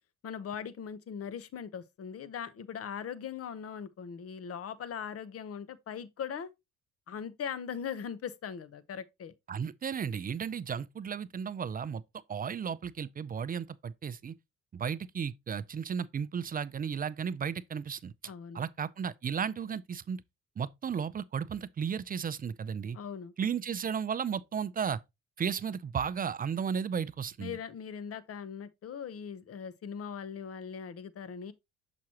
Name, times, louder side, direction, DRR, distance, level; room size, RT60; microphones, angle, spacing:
voice 1, 0.2-6.5 7.1-9.3 18.3-18.6 22.9-23.3 27.4-31.5, left 7 dB, 50° left, 0.8 m, -40 dB
voice 2, 9.5-12.0 12.3-14.3 14.7-18.1 18.5-20.2 20.6-23.0 23.4-25.0 25.4-27.6, right 7 dB, 30° right, 0.4 m, -34 dB
6.2 x 5.8 x 2.9 m
cardioid pair, 90°, 30 cm